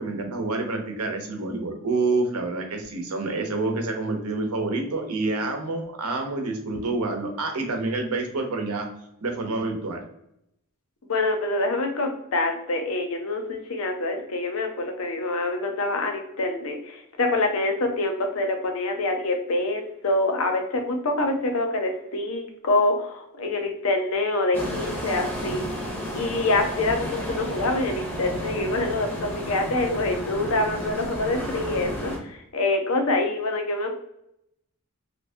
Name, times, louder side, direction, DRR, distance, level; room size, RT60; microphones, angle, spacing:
voice 1, 0.0-8.9 9.2-10.0, right 3 dB, 85° right, 3 dB, 0.8 m, -28 dB
voice 2, 11.1-25.7 26.1-33.9, left 2 dB, 70° left, 4 dB, 0.7 m, -26 dB
sound 1, 24.5-32.2, equal, 10° left, 0.7 m, -32 dB
2.8 x 2.7 x 3.3 m, 0.78 s
head